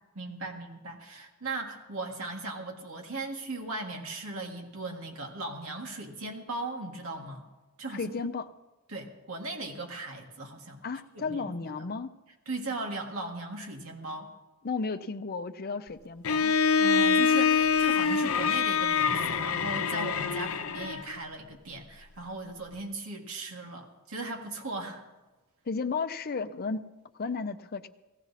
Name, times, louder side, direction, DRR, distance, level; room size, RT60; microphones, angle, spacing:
voice 1, 0.2-7.4 7.8-8.1 8.9-10.8 11.1-11.5 12.5-14.3 16.8-25.0, right 2 dB, 80° right, 1 dB, 1.8 m, -38 dB
voice 2, 7.9-8.5 10.8-12.2 14.6-16.6 25.7-26.9 27.2-27.9, left 4 dB, 45° left, 10 dB, 0.6 m, -33 dB
Bowed string instrument, 16.2-21.1, left 6 dB, 80° left, 0.7 m, -25 dB
17.5 x 15.0 x 4.1 m, 1.1 s
head